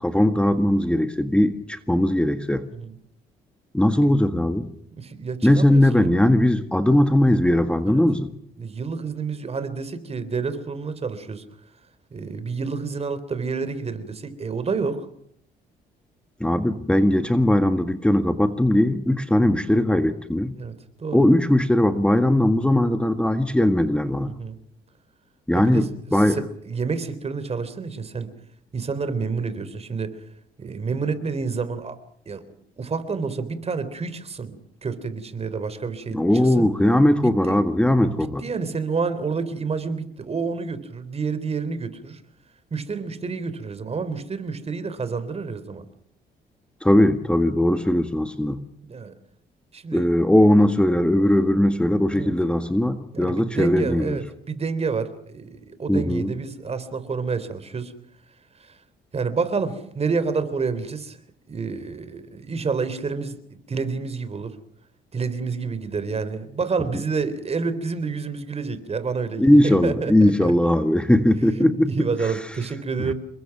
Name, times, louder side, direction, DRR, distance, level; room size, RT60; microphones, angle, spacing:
voice 1, 0.0-2.6 3.7-4.7 5.4-8.3 16.4-20.5 21.1-24.3 25.5-26.4 36.1-38.4 46.8-48.6 49.9-54.2 55.9-56.3 69.4-71.9 72.2-72.3 73.0-73.1, left 1 dB, 5° left, 8 dB, 1.7 m, -19 dB
voice 2, 5.0-6.1 7.9-8.0 8.6-11.4 12.1-15.0 20.6-20.7 21.0-21.2 24.2-24.6 25.5-25.9 26.1-28.3 28.7-30.2 30.6-32.0 32.3-32.4 32.8-34.6 34.8-36.2 36.4-36.7 37.4-37.6 38.0-42.2 42.7-45.8 48.8-49.1 49.7-50.1 52.1-52.3 53.1-57.9 58.6-58.8 59.1-61.2 61.5-64.6 65.1-70.5 71.5-73.1, right 4 dB, 35° right, 13 dB, 3.7 m, -29 dB
29.0 x 22.5 x 6.0 m, 0.67 s
cardioid pair, 95°, 18 cm